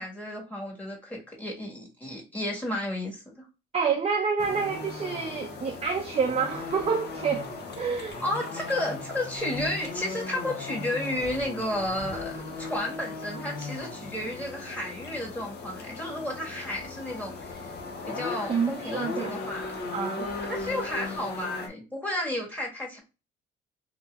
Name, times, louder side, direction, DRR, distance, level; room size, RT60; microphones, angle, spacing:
voice 1, 0.0-3.4 8.2-17.7 18.0-19.7 20.2-23.0, left 1 dB, 10° left, 1.5 m, -32 dB
voice 2, 3.7-8.2 18.5-19.3 19.9-20.3, right 6 dB, 30° right, 0.5 m, -28 dB
sound 1, 4.4-21.7, left 3 dB, 55° left, 0.8 m, -37 dB
3.9 x 2.9 x 2.4 m
cardioid pair, 90°, 20 cm